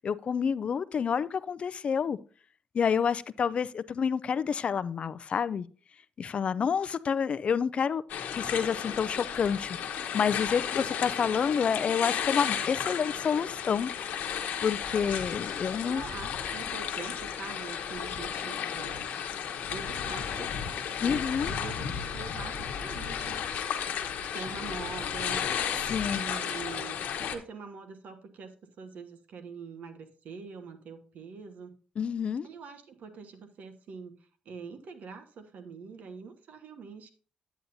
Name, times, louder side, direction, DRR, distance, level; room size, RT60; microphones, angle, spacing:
voice 1, 0.0-2.2 2.7-5.7 6.2-8.0 8.3-13.9 14.6-16.0 21.0-21.5 25.9-26.3 32.0-32.5, left 7 dB, 45° left, 0.3 m, -29 dB
sound 1, 8.1-27.4, left 8 dB, 90° left, 1.0 m, -33 dB
voice 2, 15.8-19.2 19.7-23.4 24.3-25.4 26.1-31.8 32.4-34.2 34.4-37.1, right 5 dB, 70° right, 1.2 m, -44 dB
9.4 x 9.0 x 2.6 m
cardioid pair, 125°, 3 cm